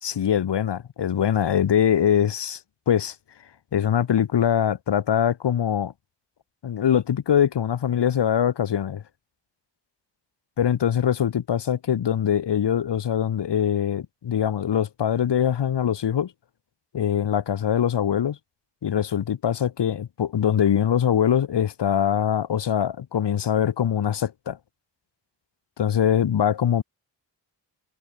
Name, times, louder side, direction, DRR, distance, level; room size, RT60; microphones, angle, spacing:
voice 1, 0.0-2.6 2.9-3.1 3.7-5.9 6.6-9.0 10.6-16.3 16.9-18.4 18.8-24.6 25.8-26.8, left 9 dB, 70° left, 0.9 m, -23 dB
wide cardioid pair, 135°, 44 cm